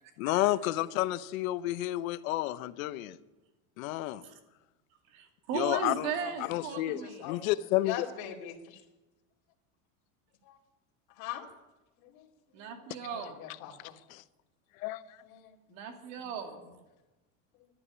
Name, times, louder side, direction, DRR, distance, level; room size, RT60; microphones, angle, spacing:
voice 1, 0.2-3.2 3.8-4.2 5.5-6.1 6.5-8.1 14.1-14.2 14.8-15.2, left 15 dB, 85° left, 14 dB, 0.9 m, -31 dB
voice 2, 5.1-7.3 12.5-13.4 15.7-16.6, right 6 dB, 75° right, 4 dB, 2.8 m, -37 dB
voice 3, 6.7-7.4 7.8-8.8 10.4-10.6 11.2-11.5 12.0-12.3 12.6-12.7 13.0-14.0 15.2-15.9 16.5-16.6 17.6-17.7, left 11 dB, 60° left, -1 dB, 2.7 m, -42 dB
12.0 x 11.0 x 9.7 m, 1.1 s
supercardioid pair, 135°, 40 cm